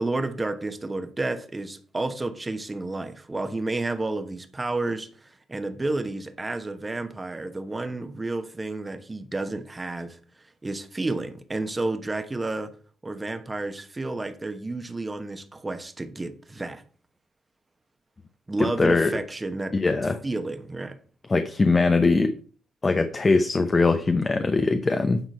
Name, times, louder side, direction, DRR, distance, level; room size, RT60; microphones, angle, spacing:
voice 1, 0.0-10.2 10.6-12.7 13.0-16.8 18.5-19.7 20.2-21.0, right 2 dB, 20° right, 1.0 m, -31 dB
voice 2, 18.8-19.1 19.7-20.2 21.3-22.3 22.8-25.2, left 3 dB, 25° left, 0.7 m, -21 dB
9.0 x 3.8 x 5.4 m
cardioid pair, 90°, 0 cm